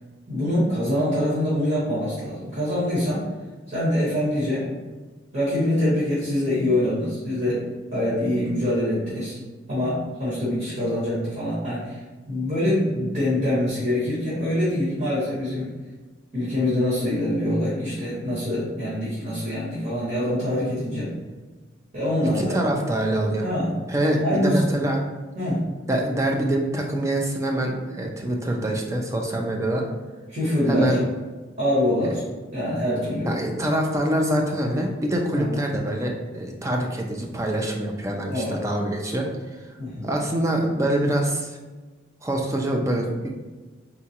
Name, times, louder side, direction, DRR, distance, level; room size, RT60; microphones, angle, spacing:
voice 1, 0.3-3.3 3.7-4.7 5.3-7.6 7.9-9.4 9.7-12.0 12.3-15.7 16.3-21.1 21.9-22.6 23.4-23.8 24.2-24.7 25.3-25.6 30.3-31.0 31.6-32.2 32.5-33.3 35.3-35.6 38.3-38.6 39.8-40.0, left 1 dB, 45° right, -11 dB, 1.4 m, -24 dB
voice 2, 22.3-23.5 23.9-25.0 25.9-29.8 30.7-31.0 33.3-39.3 40.0-41.5 42.2-43.3, right 1 dB, 15° right, 1 dB, 0.3 m, -25 dB
3.8 x 2.3 x 2.8 m, 1.3 s
head